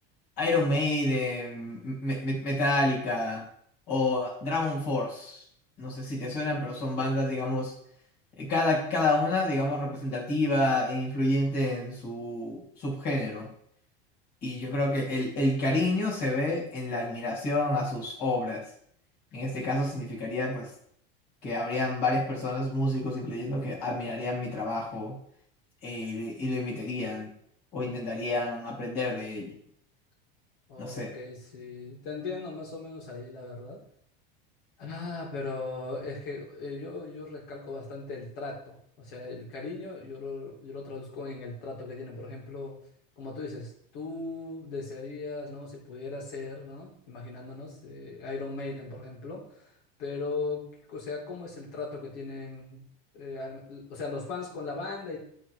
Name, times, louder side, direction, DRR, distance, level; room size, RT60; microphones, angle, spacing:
voice 1, 0.4-3.4 3.9-5.4 5.8-7.7 8.4-13.5 14.4-18.6 19.3-20.7 21.4-25.2 25.8-27.3 27.7-29.5 30.8-31.1, left 2 dB, 35° left, -4 dB, 3.0 m, -29 dB
voice 2, 14.6-15.4 30.7-33.8 34.8-42.8 43.2-52.8 53.1-55.2, left 3 dB, 65° left, -3 dB, 2.6 m, -38 dB
11.0 x 4.0 x 4.8 m, 0.67 s
supercardioid pair, 180°, 29 cm